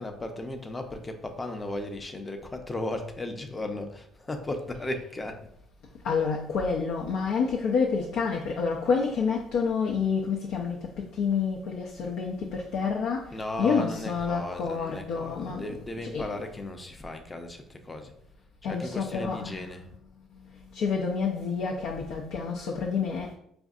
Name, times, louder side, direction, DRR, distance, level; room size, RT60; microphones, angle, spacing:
voice 1, 0.0-5.5 13.3-18.1 18.6-19.9, left 1 dB, 20° left, 0.6 m, -36 dB
voice 2, 6.0-16.4 18.6-19.6 20.7-23.3, left 5 dB, 75° left, 0.5 m, -28 dB
5.1 x 2.6 x 2.4 m
supercardioid pair, 90°, 0 cm